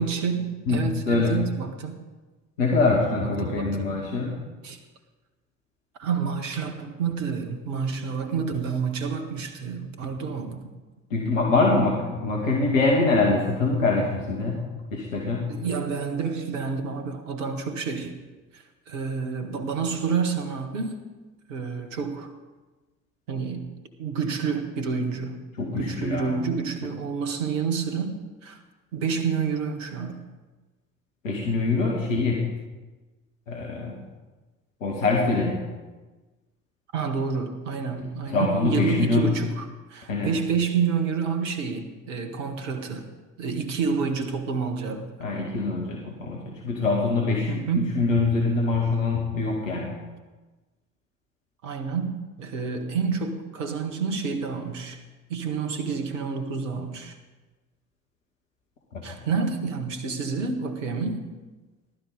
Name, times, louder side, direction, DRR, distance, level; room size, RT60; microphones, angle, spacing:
voice 1, 0.0-2.0 3.2-4.1 4.6-4.8 6.0-10.7 15.5-18.2 18.5-21.0 21.5-22.3 23.3-23.6 24.0-25.4 25.8-28.6 28.9-30.2 36.9-43.1 43.4-45.1 47.5-47.9 51.6-55.0 55.3-57.1 59.0-61.2, right 5 dB, 70° right, 6 dB, 1.9 m, -29 dB
voice 2, 0.7-1.3 2.6-4.4 11.1-14.6 14.9-15.5 25.6-26.3 31.2-32.4 33.5-34.0 34.8-35.6 38.3-39.3 40.1-40.3 45.2-47.5 47.9-50.0 58.9-59.2, left 3 dB, 75° left, -1 dB, 2.3 m, -24 dB
18.0 x 12.5 x 5.2 m, 1.2 s
figure-of-eight pair, 55°, 40 cm